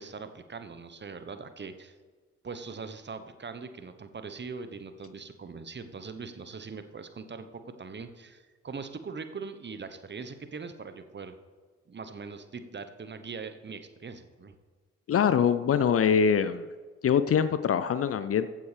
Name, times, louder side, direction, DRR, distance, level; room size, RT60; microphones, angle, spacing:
voice 1, 0.0-1.9 2.4-11.4 11.9-14.5, right 4 dB, 30° right, 9 dB, 1.0 m, -41 dB
voice 2, 15.1-16.6 17.0-18.5, left 7 dB, 40° left, 13 dB, 0.6 m, -23 dB
15.0 x 9.1 x 3.4 m, 1.4 s
hypercardioid pair, 40°, 35 cm